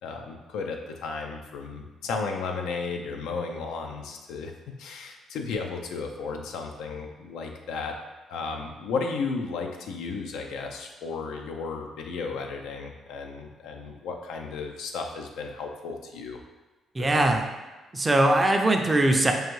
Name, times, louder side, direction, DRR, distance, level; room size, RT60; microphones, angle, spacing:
voice 1, 0.0-8.0 8.3-16.4 17.0-17.3, left 4 dB, 85° left, 3 dB, 0.5 m, -34 dB
voice 2, 16.9-17.4 17.9-19.3, right 1 dB, 25° right, 3 dB, 0.5 m, -21 dB
4.7 x 2.5 x 3.1 m, 1.2 s
cardioid pair, 90°, 0 cm